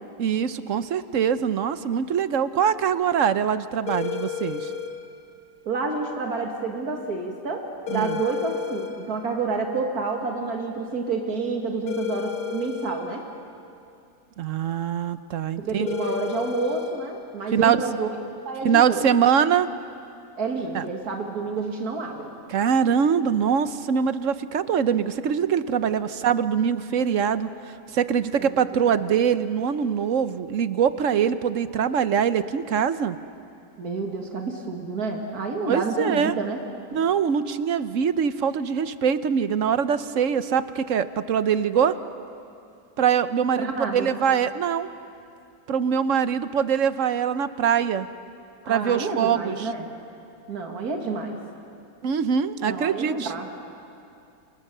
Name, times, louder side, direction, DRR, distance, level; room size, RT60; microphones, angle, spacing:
voice 1, 0.2-4.7 7.9-8.2 14.4-15.9 17.5-17.8 18.6-19.7 20.7-20.8 22.5-33.2 35.7-36.3 36.9-42.0 43.0-44.9 45.7-48.1 48.7-49.7 52.0-53.3, right 7 dB, 60° right, 12 dB, 1.1 m, -23 dB
sound 1, 3.9-4.9 7.9-8.9 11.9-12.9 15.9-16.9, left 7 dB, 90° left, 2.9 m, -31 dB
voice 2, 5.7-13.3 15.6-18.1 18.4-19.0 20.4-22.3 28.4-28.6 33.8-36.6 43.6-44.1 48.6-49.9 50.5-51.4 52.7-53.5, right 4 dB, 75° right, 2 dB, 2.4 m, -29 dB
29.5 x 28.0 x 6.7 m, 2.5 s
omnidirectional pair, 1.6 m